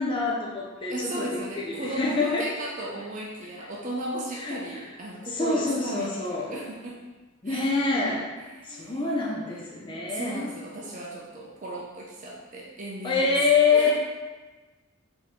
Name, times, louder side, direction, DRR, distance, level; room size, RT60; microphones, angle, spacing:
voice 1, 0.0-1.4 1.7-2.5 4.4-4.6 5.3-6.5 7.4-8.3 8.6-10.5 13.0-13.9, left 4 dB, 25° left, -4 dB, 0.5 m, -25 dB
voice 2, 0.9-7.0 7.4-7.8 8.4-9.3 10.1-13.4 13.7-13.9, right 1 dB, 40° right, -3 dB, 0.5 m, -36 dB
3.7 x 2.8 x 4.1 m, 1.2 s
head